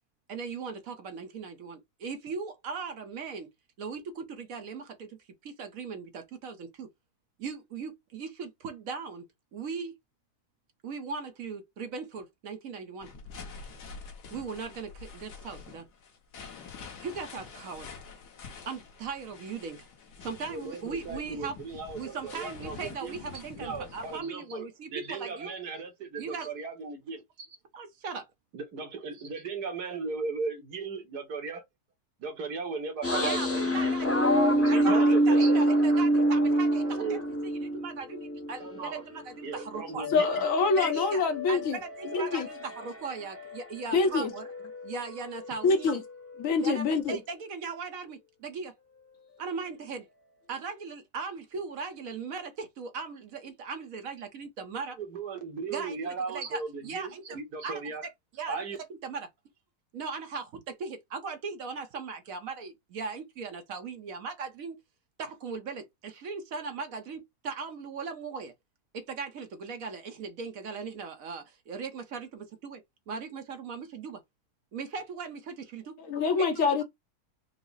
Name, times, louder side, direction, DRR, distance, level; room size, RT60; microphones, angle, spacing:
voice 1, 0.3-3.5 3.8-5.2 5.4-6.9 7.4-9.2 9.5-9.9 10.8-13.1 14.3-15.9 17.0-17.9 18.7-19.9 20.2-25.5 26.2-26.5 27.7-28.3 33.2-34.1 34.7-40.1 40.8-41.2 41.5-44.5 44.8-46.0 46.6-48.7 49.4-50.1 50.5-55.0 55.7-59.3 59.9-64.8 65.2-68.5 68.9-74.2 74.7-76.0 76.4-76.6, right 5 dB, 65° right, 1.1 m, -38 dB
sound 1, 13.0-24.2, left 5 dB, 85° left, 1.6 m, -46 dB
voice 2, 20.5-20.8 21.1-23.1 23.6-24.6 24.9-27.5 28.5-31.6 32.2-33.9 34.6-35.6 37.0-37.2 38.6-38.9 39.4-40.2 55.0-58.0 58.5-58.8, right 4 dB, 80° right, 1.7 m, -36 dB
sound 2, 33.0-39.0 39.4-43.6 43.9-46.5, right 1 dB, 15° left, 0.4 m, -27 dB
voice 3, 40.1-41.8 42.1-42.5 43.9-44.3 45.6-46.0 46.4-47.2 76.0-76.8, left 4 dB, 60° left, 1.1 m, -25 dB
4.7 x 2.0 x 3.9 m
omnidirectional pair, 1.7 m